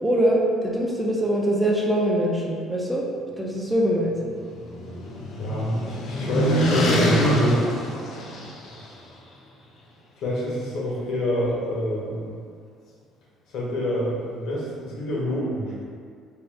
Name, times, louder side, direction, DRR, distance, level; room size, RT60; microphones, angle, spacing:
voice 1, 0.0-3.0 3.4-4.2, right 1 dB, 10° right, -3 dB, 0.4 m, -23 dB
sound 1, 4.1-8.8, equal, 50° left, 0.5 m, -25 dB
voice 2, 5.4-7.6 8.6-9.0 10.2-12.3 13.5-15.9, equal, 70° left, -5 dB, 0.8 m, -27 dB
2.7 x 2.2 x 3.3 m, 2.1 s
cardioid pair, 120°, 0 cm